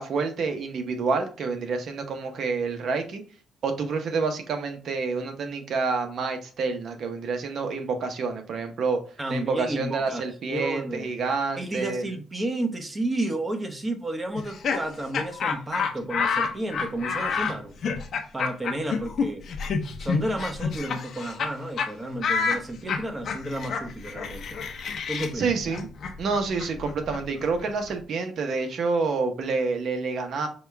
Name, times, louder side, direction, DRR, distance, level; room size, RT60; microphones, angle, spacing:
voice 1, 0.0-3.2 3.6-9.0 9.3-12.2 25.4-25.9 26.2-30.5, right 4 dB, 65° right, 5 dB, 0.9 m, -28 dB
voice 2, 9.2-11.1 11.6-17.8 18.3-19.4 20.0-24.6 25.1-25.5, right 1 dB, 20° right, 5 dB, 0.9 m, -32 dB
Laughter, 14.3-21.5 21.8-21.9 22.2-27.9, left 5 dB, 60° left, 0.7 m, -29 dB
4.9 x 2.4 x 3.3 m, 0.40 s
cardioid pair, 90°, 0 cm